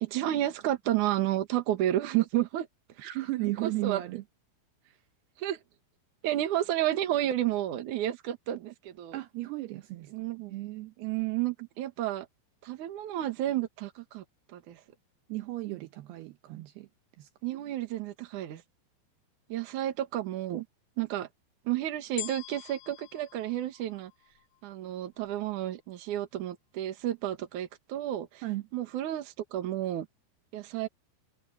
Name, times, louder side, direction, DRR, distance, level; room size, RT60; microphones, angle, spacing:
voice 1, 0.0-2.7 3.0-3.1 3.6-4.0 5.4-5.6 6.2-9.2 10.1-10.5 11.0-12.3 12.6-14.2 14.5-14.8 17.4-18.6 19.5-20.7 21.0-21.3 21.7-24.1 24.6-28.4 28.7-30.1 30.5-30.9, right 13 dB, 60° right, 2.1 m, -31 dB
voice 2, 3.0-4.2 4.9-5.0 9.1-10.1 10.5-10.9 15.3-16.9 17.2-17.3 28.4-28.7, right 18 dB, 80° right, 2.3 m, -35 dB
sound 1, 22.2-24.6 25.2-25.3, left 25 dB, 75° left, 2.5 m, -43 dB
omnidirectional pair, 5.7 m